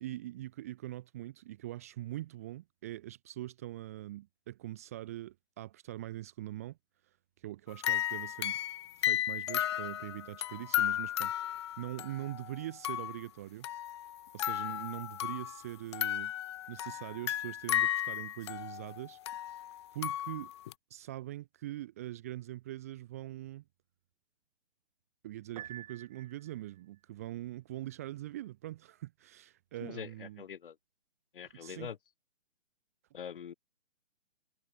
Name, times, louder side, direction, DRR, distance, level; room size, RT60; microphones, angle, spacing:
voice 1, 0.0-6.8 7.0-8.6 9.0-13.7 14.3-16.3 16.7-19.2 19.9-20.5 20.9-23.6 25.2-30.4 31.4-31.9, right 15 dB, 15° right, 0.8 m, -43 dB
sound 1, 7.7-13.2 13.6-15.6 15.9-20.7, left 12 dB, 25° left, 1.0 m, -34 dB
Piano, 25.6-26.8, right 11 dB, 35° right, 5.0 m, -48 dB
voice 2, 29.8-30.7 31.3-32.0 33.1-33.5, left 8 dB, 50° left, 3.4 m, -43 dB
hypercardioid pair, 160°, 35 cm